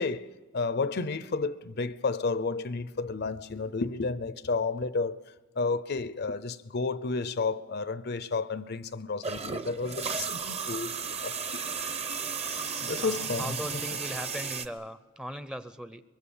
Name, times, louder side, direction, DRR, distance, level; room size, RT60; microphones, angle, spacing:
voice 1, 0.0-11.9 12.9-13.6, left 4 dB, 50° left, 0.6 m, -32 dB
sound 1, 9.2-14.7, right 5 dB, 30° right, 0.9 m, -34 dB
voice 2, 13.0-16.0, equal, 5° right, 0.7 m, -39 dB
23.5 x 22.5 x 7.1 m
head